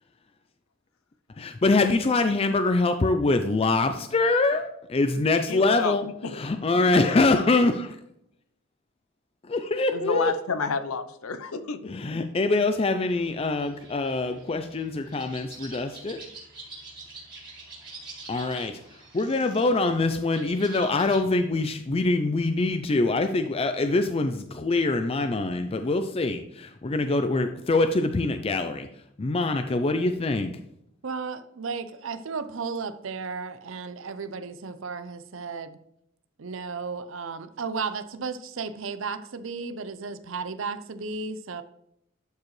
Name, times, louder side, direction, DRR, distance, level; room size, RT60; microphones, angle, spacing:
voice 1, 1.4-6.0 6.4-7.7 9.5-10.3 11.8-16.2 18.3-18.7 19.1-28.9 29.2-30.5, left 3 dB, 25° left, 7 dB, 0.4 m, -24 dB
voice 2, 5.5-6.4 9.9-11.8, left 4 dB, 85° left, 11 dB, 0.7 m, -30 dB
sound 1, 13.1-21.2, right 3 dB, 20° right, 2.5 m, -46 dB
voice 3, 31.0-35.8 36.4-41.6, right 4 dB, 65° right, 11 dB, 0.6 m, -34 dB
11.5 x 4.8 x 3.2 m, 0.75 s
head